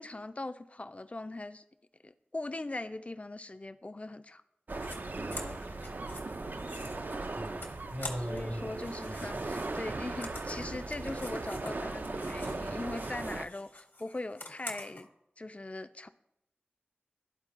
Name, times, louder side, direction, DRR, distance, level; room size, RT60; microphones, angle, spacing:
voice 1, 0.0-1.6 2.0-4.4 8.3-15.1 15.4-16.1, left 2 dB, 35° left, 0.4 m, -40 dB
sound 1, 4.7-5.0 5.3-8.5 8.8-12.7 12.9-15.0, left 2 dB, 75° left, 1.1 m, -47 dB
sound 2, 4.7-13.5, right 2 dB, 60° right, 0.4 m, -38 dB
voice 2, 5.2-6.0 7.4-7.6 7.9-8.7 9.1-9.2, equal, 80° right, 1.6 m, -40 dB
12.0 x 4.4 x 2.5 m
wide cardioid pair, 55°, 4 cm